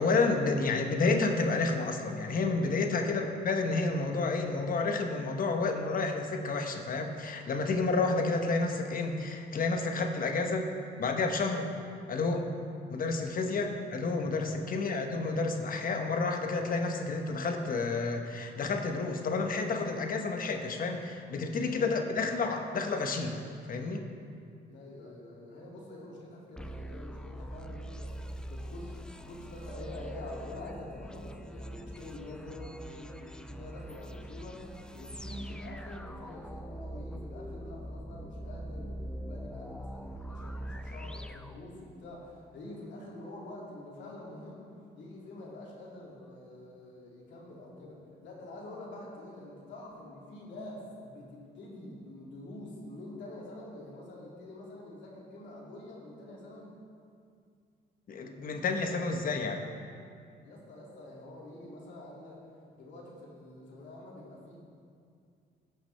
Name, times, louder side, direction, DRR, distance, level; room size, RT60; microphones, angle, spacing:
voice 1, 0.0-10.7 11.0-11.7 12.1-12.5 12.9-23.4 23.7-24.0 58.1-59.6, left 3 dB, 50° left, 4 dB, 1.0 m, -30 dB
voice 2, 13.4-13.7 14.5-14.9 21.7-22.0 24.7-28.2 28.5-44.7 45.0-56.7 60.4-62.4 62.7-64.6, left 1 dB, 75° left, -4 dB, 2.5 m, -46 dB
sound 1, 26.6-42.2, equal, 5° left, 0.4 m, -43 dB
17.0 x 5.9 x 3.4 m, 2.3 s
cardioid pair, 95°, 19 cm